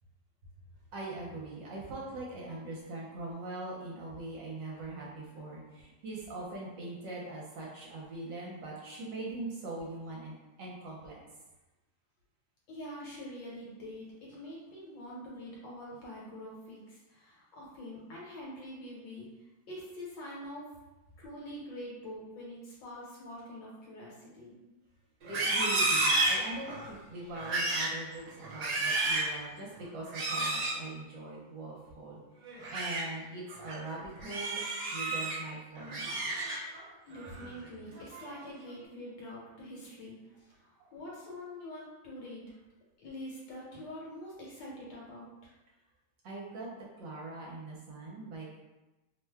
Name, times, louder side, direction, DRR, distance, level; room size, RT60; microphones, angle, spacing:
voice 1, 0.9-11.2 25.3-32.2 32.7-34.6 34.9-36.3 40.8-40.9 46.2-46.7 47.0-48.6, right 2 dB, 70° right, -4 dB, 1.2 m, -42 dB
voice 2, 12.7-20.7 21.2-24.6 37.1-42.4 43.0-45.5, left 1 dB, 65° left, -5 dB, 1.4 m, -45 dB
Livestock farm animals working animals, 25.2-26.9 27.3-28.0 28.4-29.3 30.1-30.8 32.5-33.0 33.5-33.7 34.2-35.4 35.8-36.8 37.2-37.5 37.9-38.4, right 2 dB, 50° right, 1.1 m, -31 dB
3.2 x 2.1 x 3.4 m, 1.1 s
omnidirectional pair, 2.2 m